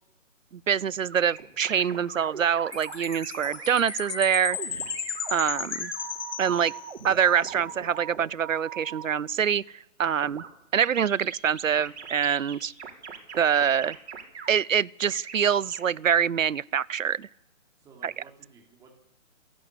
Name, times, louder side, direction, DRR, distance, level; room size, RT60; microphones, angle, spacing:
voice 1, 0.5-4.8 5.3-5.9 6.4-6.7 7.0-9.6 10.0-10.4 10.7-12.7 13.3-14.0 14.5-17.3 18.0-18.1, right 8 dB, 85° right, 0.8 m, -25 dB
sound 1, 1.1-9.0 10.1-10.5 10.8-14.5 15.1-15.8, right 7 dB, 55° right, 5.1 m, -40 dB
Chime, 2.7-7.2, left 8 dB, 35° left, 1.2 m, -36 dB
voice 2, 6.4-6.7 17.8-19.0, right 4 dB, 10° right, 3.5 m, -54 dB
27.5 x 11.5 x 8.6 m
hypercardioid pair, 160°, 38 cm